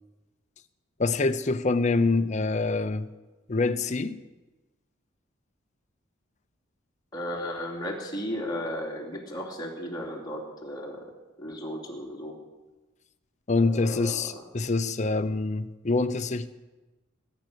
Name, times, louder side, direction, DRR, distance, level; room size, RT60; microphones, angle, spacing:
voice 1, 1.0-3.1 3.5-4.2 13.5-16.5, left 3 dB, 35° left, 10 dB, 0.6 m, -25 dB
voice 2, 7.1-11.0 11.4-12.3 13.6-14.4, equal, 20° left, -2 dB, 3.0 m, -35 dB
20.0 x 9.2 x 6.8 m, 1.2 s
head